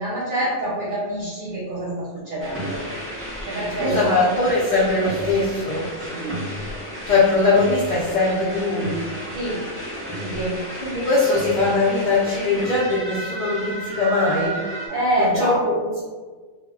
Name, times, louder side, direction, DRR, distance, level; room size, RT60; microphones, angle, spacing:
voice 1, 0.0-2.8 3.4-4.2 6.1-6.4 9.3-9.7 10.2-10.7 14.9-15.8, right 1 dB, 55° right, -6 dB, 0.7 m, -26 dB
sound 1, 2.4-14.9, equal, 15° right, 0.5 m, -33 dB
voice 2, 3.8-5.9 7.1-9.0 10.8-14.6 15.2-15.8, left 3 dB, 55° left, -6 dB, 0.5 m, -21 dB
2.1 x 2.1 x 3.5 m, 1.4 s
omnidirectional pair, 1.2 m